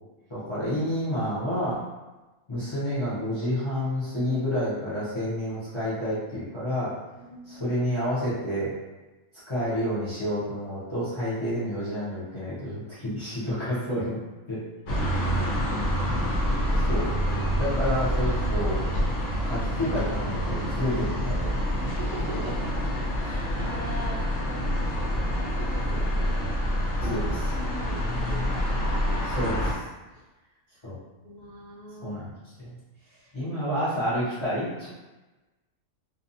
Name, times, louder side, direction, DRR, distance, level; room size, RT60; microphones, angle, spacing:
voice 1, 0.3-1.8 2.5-6.9 7.5-8.7 9.5-14.2 14.5-14.6 14.9-15.2 15.6-15.9 16.9-18.8 19.4-21.6 22.3-22.5 27.0-27.5 29.3-29.7 30.8-31.0 32.0-32.3 32.6-32.8 33.3-34.9, equal, 25° left, -10 dB, 0.7 m, -29 dB
voice 2, 7.1-7.8 13.3-13.8 15.1-17.8 21.7-22.7 23.0-26.4 27.5-29.5 30.1-30.2 30.5-30.6 31.2-32.3 32.9-33.6, right 1 dB, 55° right, -8 dB, 0.8 m, -43 dB
sound 1, 14.9-29.7, equal, 65° left, 0.9 m, -27 dB
sound 2, 21.5-26.5, equal, 45° left, 1.1 m, -44 dB
2.6 x 2.2 x 2.6 m, 1.1 s
omnidirectional pair, 1.4 m